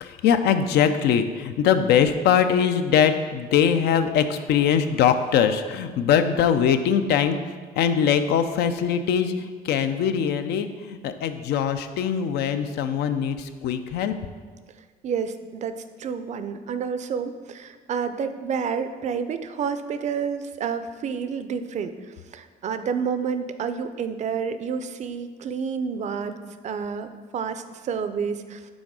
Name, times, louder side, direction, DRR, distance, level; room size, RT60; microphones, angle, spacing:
voice 1, 0.0-7.4 7.8-14.1, left 8 dB, 75° left, 9 dB, 0.5 m, -22 dB
voice 2, 15.0-21.9 22.3-26.4 26.6-28.6, right 6 dB, 45° right, 10 dB, 0.4 m, -29 dB
6.2 x 3.7 x 4.7 m, 1.5 s
cardioid pair, 110°, 17 cm